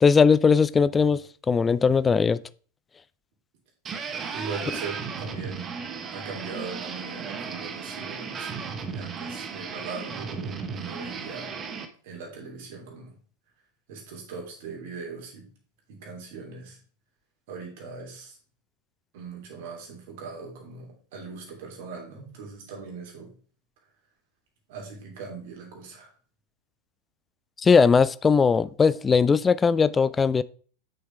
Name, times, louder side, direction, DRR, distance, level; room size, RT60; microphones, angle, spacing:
voice 1, 0.0-2.4 27.6-30.4, left 5 dB, 15° left, 0.3 m, -19 dB
sound 1, 3.8-11.9, right 5 dB, 25° right, 1.0 m, -35 dB
voice 2, 4.3-5.8 6.1-8.5 8.9-11.6 12.0-13.2 13.9-15.5 15.9-16.8 17.5-18.4 19.1-23.3 24.7-26.1, right 4 dB, 50° right, 3.0 m, -40 dB
7.9 x 6.5 x 3.4 m
figure-of-eight pair, 90°, 0 cm